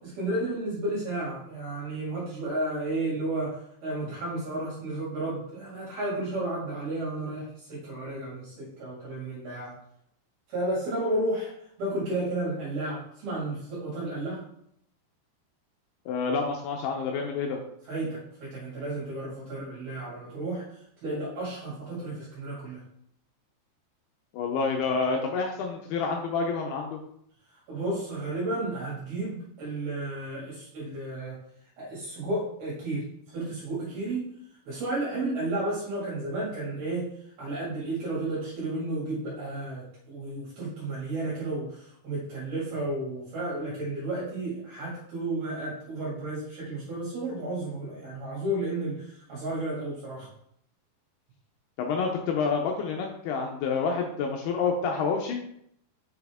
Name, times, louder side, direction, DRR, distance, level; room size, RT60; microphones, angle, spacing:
voice 1, 0.2-9.8 10.5-11.5 11.8-14.4 17.9-22.8 27.7-31.4 31.8-33.1 33.3-34.3 34.7-37.1 37.4-50.3, right 2 dB, 60° right, -7 dB, 3.7 m, -32 dB
voice 2, 16.1-17.6 24.3-27.0 51.8-55.4, left 5 dB, 80° left, 1 dB, 2.3 m, -28 dB
6.7 x 5.7 x 3.5 m, 0.71 s
omnidirectional pair, 5.3 m